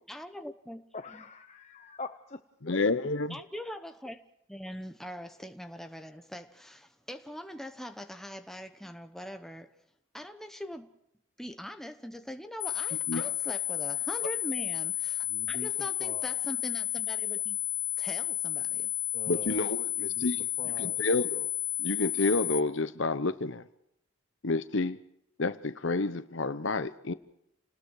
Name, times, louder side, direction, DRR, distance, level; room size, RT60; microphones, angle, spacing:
voice 1, 0.0-0.8 1.1-1.3 3.3-4.2 4.5-9.7 10.1-10.9 11.4-17.6 18.0-18.9, equal, ahead, 0.9 m, -42 dB
voice 2, 0.9-2.4 15.3-15.7 16.0-16.3 19.1-19.7 20.0-20.3 20.6-21.0, left 3 dB, 35° left, 0.7 m, -43 dB
voice 3, 2.6-3.4 13.1-13.3 19.3-21.5 21.8-23.7 24.4-25.1 25.4-27.1, left 3 dB, 65° left, 0.9 m, -30 dB
sound 1, 12.6-22.6, left 14 dB, 85° left, 1.4 m, -32 dB
30.0 x 19.5 x 4.8 m
head